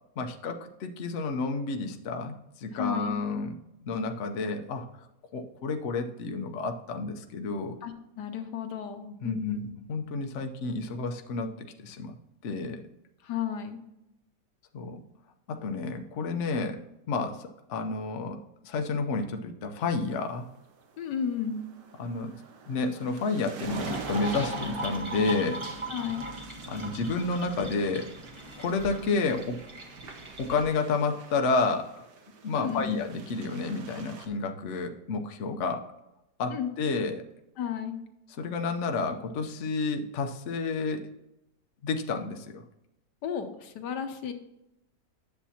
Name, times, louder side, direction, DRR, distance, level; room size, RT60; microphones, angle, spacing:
voice 1, 0.2-3.5 3.8-4.9 5.3-7.7 9.2-9.6 9.9-12.1 12.4-12.8 14.7-15.0 15.5-16.8 17.1-20.5 22.0-22.3 22.7-25.6 26.7-28.1 28.6-29.6 30.4-32.0 32.4-35.9 36.4-37.2 38.4-41.1 41.8-42.6, left 3 dB, 55° left, 5 dB, 1.0 m, -30 dB
voice 2, 2.7-3.2 7.8-9.7 13.2-13.8 21.0-21.7 25.9-26.3 32.5-33.0 36.5-36.7 37.6-38.0 43.2-44.3, left 8 dB, 80° left, 7 dB, 1.5 m, -33 dB
sound 1, 20.0-34.3, right 6 dB, 85° right, 1.7 m, -47 dB
sound 2, 23.6-30.6, right 1 dB, 20° right, 1.0 m, -38 dB
10.0 x 7.1 x 2.8 m, 0.87 s
omnidirectional pair, 1.8 m